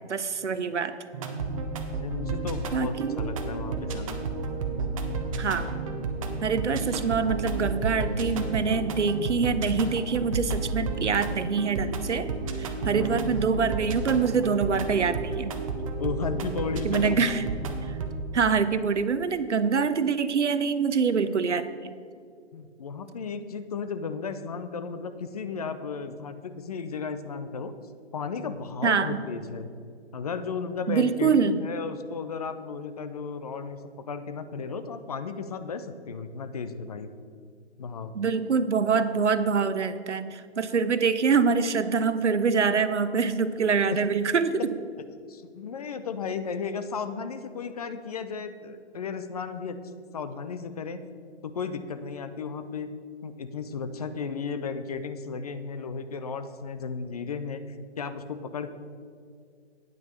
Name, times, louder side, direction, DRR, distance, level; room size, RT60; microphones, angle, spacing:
voice 1, 0.1-0.9 2.7-3.3 5.4-5.7 6.4-12.3 12.6-15.5 16.8-17.5 17.9-18.0 18.3-22.0 28.8-29.2 30.9-31.6 38.1-44.7, right 5 dB, 80° right, 12 dB, 0.7 m, -25 dB
Duality - Minimalist Instrumental for Podcasts & Videos, 1.1-18.1, right 3 dB, 30° right, 0.8 m, -32 dB
voice 2, 2.0-4.3 12.8-13.2 16.0-17.2 22.5-27.7 28.1-29.7 30.1-37.1 37.8-38.1 43.9-44.0 45.3-49.8 50.1-51.0 51.4-52.9 53.2-58.7, left 5 dB, 35° left, 10 dB, 0.5 m, -34 dB
9.3 x 5.9 x 6.5 m, 2.2 s
figure-of-eight pair, 135°, 34 cm